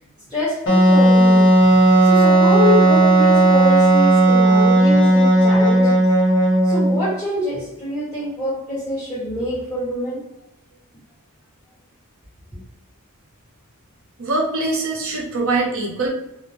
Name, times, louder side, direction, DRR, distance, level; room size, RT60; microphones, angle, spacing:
voice 1, 0.3-6.0 6.6-10.3, left 1 dB, 10° left, -10 dB, 1.0 m, -26 dB
Wind instrument woodwind instrument, 0.7-7.1, right 1 dB, 55° left, 0.8 m, -14 dB
voice 2, 14.2-16.1, right 2 dB, 70° right, -2 dB, 0.8 m, -23 dB
2.2 x 2.0 x 3.0 m, 0.85 s
head